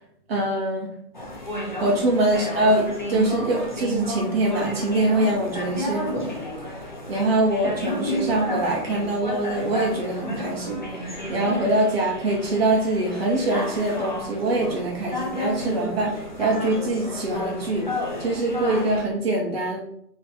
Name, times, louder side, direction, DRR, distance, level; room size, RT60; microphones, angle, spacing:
voice 1, 0.3-0.9 1.8-6.3 7.1-10.8 11.3-17.9 18.2-19.8, right 1 dB, 35° right, -2 dB, 1.9 m, -23 dB
sound 1, 1.1-19.0, equal, 30° left, 0.6 m, -32 dB
4.4 x 4.0 x 5.3 m, 0.72 s
hypercardioid pair, 175°, 49 cm